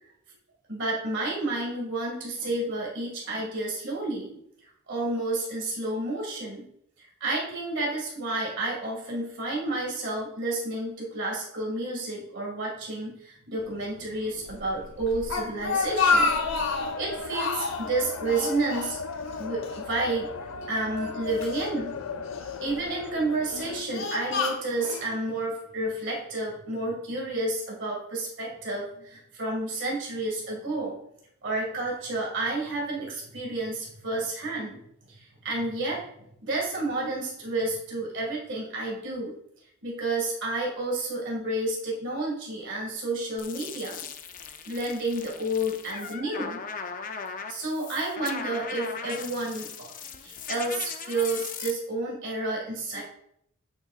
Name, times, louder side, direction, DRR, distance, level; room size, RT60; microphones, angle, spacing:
voice 1, 0.7-4.3 4.9-6.7 7.0-16.3 16.6-19.0 19.4-22.2 22.6-30.9 31.4-34.8 35.1-36.0 36.4-39.3 39.8-44.0 44.7-46.6 47.4-49.7 50.2-53.0, right 2 dB, 60° right, -3 dB, 2.1 m, -30 dB
sound 1, 13.6-23.8, left 4 dB, 90° left, 0.5 m, -38 dB
Speech, 15.1-17.0 17.3-17.9 18.3-19.4 19.6-19.8 20.6-21.6 22.3-22.8 23.4-25.1, left 4 dB, 65° left, 1.1 m, -28 dB
sound 2, 43.4-51.7, left 6 dB, 40° left, 0.5 m, -38 dB
8.9 x 6.5 x 2.4 m, 0.74 s
head